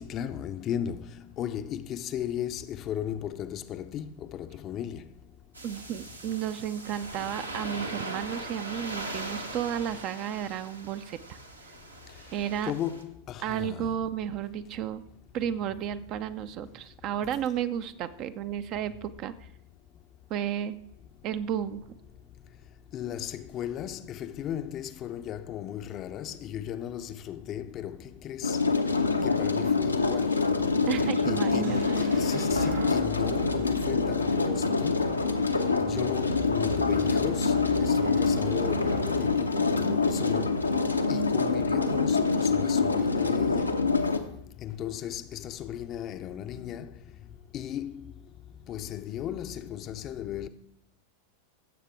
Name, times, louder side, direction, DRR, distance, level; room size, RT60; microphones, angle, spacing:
voice 1, 0.0-5.1 12.1-12.2 12.6-13.9 22.9-28.6 28.9-30.6 31.3-35.3 35.8-40.7 41.1-43.8 44.6-48.3 48.6-50.5, left 10 dB, 35° left, 0.5 m, -36 dB
sound 1, 5.5-13.0, right 2 dB, 80° right, 1.1 m, -40 dB
voice 2, 5.6-11.4 12.3-12.7 13.4-15.0 15.3-19.5 20.3-20.8 21.2-21.8 30.9-31.8, right 9 dB, 40° right, 0.5 m, -32 dB
sound 2, 28.4-44.2, left 4 dB, 80° left, 0.7 m, -26 dB
sound 3, 30.0-39.1, right 2 dB, 65° right, 3.9 m, -41 dB
15.5 x 7.3 x 3.5 m
figure-of-eight pair, 90°, 0 cm